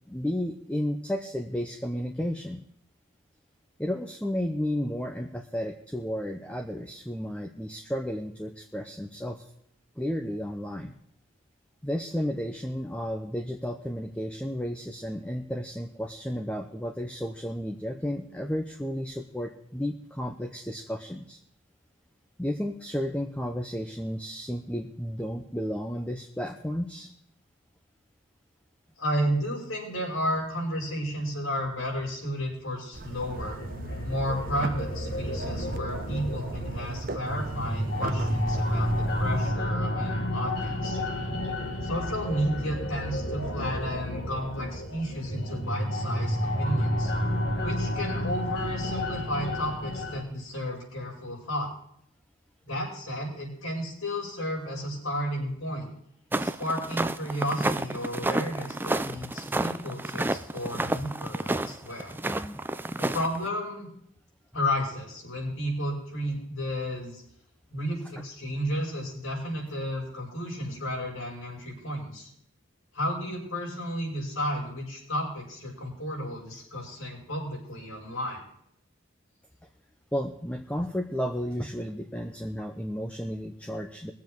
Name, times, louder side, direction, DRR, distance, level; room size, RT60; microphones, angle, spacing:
voice 1, 0.1-2.6 3.8-9.4 10.0-11.0 11.8-21.4 22.4-27.1 62.1-62.6 80.1-84.1, equal, 5° left, 3 dB, 0.7 m, -33 dB
voice 2, 29.0-33.6 34.0-41.0 41.8-47.1 47.6-51.7 52.6-55.9 56.4-62.1 63.0-63.9 64.5-67.2 67.7-72.3 72.9-78.4, equal, 85° left, -2 dB, 5.1 m, -32 dB
sound 1, 32.9-39.5, right 2 dB, 45° right, 0.7 m, -38 dB
sound 2, 33.2-50.2, equal, 55° left, 2.2 m, -31 dB
sound 3, 56.3-63.5, right 2 dB, 10° right, 0.4 m, -30 dB
21.5 x 7.3 x 4.6 m, 0.71 s
head